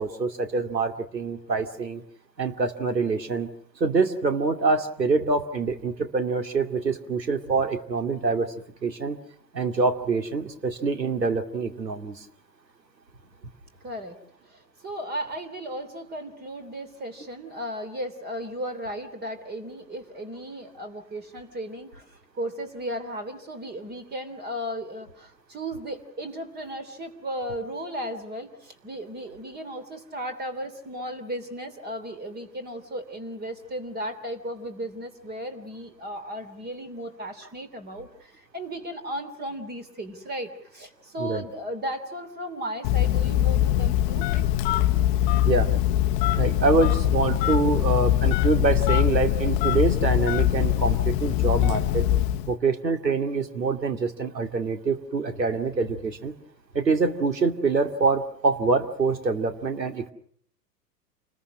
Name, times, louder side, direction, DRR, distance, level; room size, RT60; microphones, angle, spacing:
voice 1, 0.0-2.0 2.4-3.5 3.8-8.5 8.8-9.2 9.5-12.2 41.2-41.4 45.4-45.7 46.3-52.1 52.5-56.3 56.7-60.1, right 4 dB, 80° right, 6 dB, 2.7 m, -25 dB
voice 2, 13.8-14.2 14.4-44.5 47.0-47.1, equal, 20° right, 10 dB, 3.0 m, -35 dB
Telephone, 42.8-52.5, left 13 dB, 35° left, 0.9 m, -22 dB
29.5 x 21.0 x 6.2 m, 0.64 s
figure-of-eight pair, 100°, 50 cm